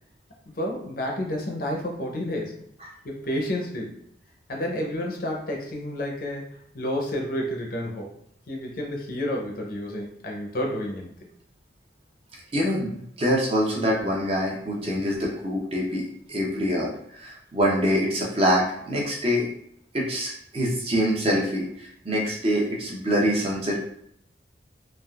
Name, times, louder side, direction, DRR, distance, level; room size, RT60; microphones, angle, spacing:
voice 1, 0.6-2.6 3.0-4.0 4.5-6.5 6.7-8.1 8.5-11.2 15.0-15.1, left 1 dB, 50° left, 0 dB, 0.6 m, -30 dB
voice 2, 12.5-16.9 17.2-19.5 19.9-23.8, equal, 35° right, -3 dB, 0.6 m, -25 dB
3.5 x 2.4 x 2.3 m, 0.70 s
head